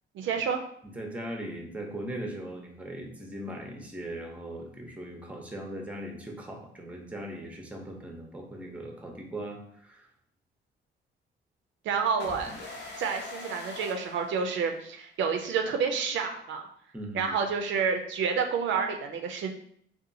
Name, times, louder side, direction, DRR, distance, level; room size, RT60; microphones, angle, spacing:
voice 1, 0.2-0.6 11.8-12.5 13.0-16.7 17.1-19.5, right 6 dB, 75° right, 4 dB, 0.4 m, -29 dB
voice 2, 0.8-10.1 16.9-17.4, right 1 dB, 5° right, 1 dB, 0.6 m, -39 dB
sound 1, 12.2-15.0, left 2 dB, 60° left, 0.8 m, -43 dB
2.7 x 2.3 x 2.6 m, 0.67 s
cardioid pair, 90°, 20 cm